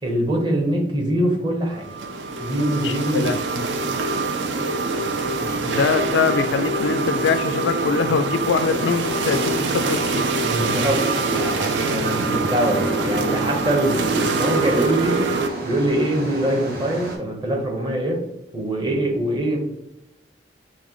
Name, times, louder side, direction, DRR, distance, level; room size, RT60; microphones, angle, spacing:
voice 1, 0.0-1.9 2.4-3.3 5.4-5.8 10.4-15.2 15.6-18.2 18.5-19.6, right 1 dB, 25° right, 0 dB, 0.8 m, -23 dB
sound 1, 1.7-15.5, right 3 dB, 75° right, 0.4 m, -24 dB
voice 2, 2.8-3.7 5.7-10.3, left 5 dB, 75° left, 10 dB, 0.3 m, -23 dB
sound 2, 8.5-17.2, right 1 dB, 55° right, 1.0 m, -33 dB
6.0 x 2.2 x 3.0 m, 0.88 s
head